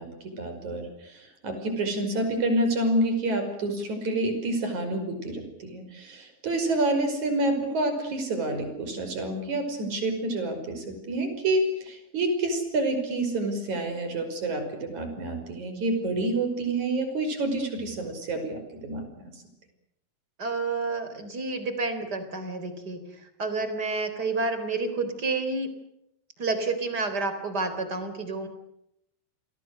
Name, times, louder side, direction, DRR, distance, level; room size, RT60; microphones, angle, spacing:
voice 1, 0.0-19.1, right 2 dB, 40° right, 7 dB, 6.6 m, -28 dB
voice 2, 20.4-25.7 26.4-28.5, right 3 dB, 25° right, 9 dB, 3.8 m, -30 dB
30.0 x 22.5 x 6.7 m, 0.80 s
omnidirectional pair, 5.3 m